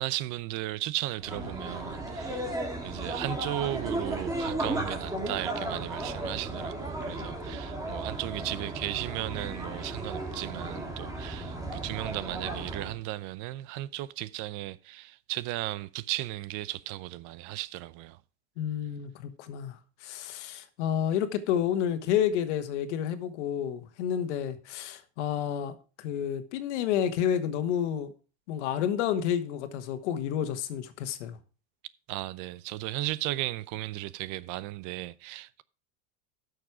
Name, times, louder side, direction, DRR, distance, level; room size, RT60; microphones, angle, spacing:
voice 1, 0.0-2.5 2.8-18.2 32.1-35.6, right 17 dB, 60° right, 0.7 m, -35 dB
sound 1, 1.2-13.0, right 2 dB, 10° right, 2.5 m, -35 dB
voice 2, 18.6-28.1 28.5-31.4, left 9 dB, 90° left, 1.5 m, -30 dB
12.0 x 6.5 x 4.8 m
supercardioid pair, 130°, 34 cm